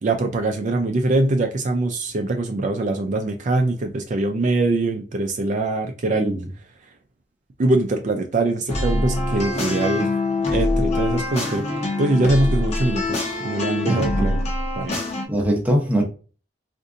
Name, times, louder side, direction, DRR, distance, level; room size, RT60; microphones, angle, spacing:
voice 1, 0.0-6.3 7.6-10.1 10.5-11.7 12.0-14.4 14.8-15.0, right 2 dB, 45° right, 0.4 m, -22 dB
sound 1, 8.7-15.3, left 2 dB, 40° left, 0.8 m, -24 dB
voice 2, 13.9-14.3 15.3-16.0, right 1 dB, 10° right, 0.7 m, -22 dB
3.9 x 2.6 x 2.4 m
head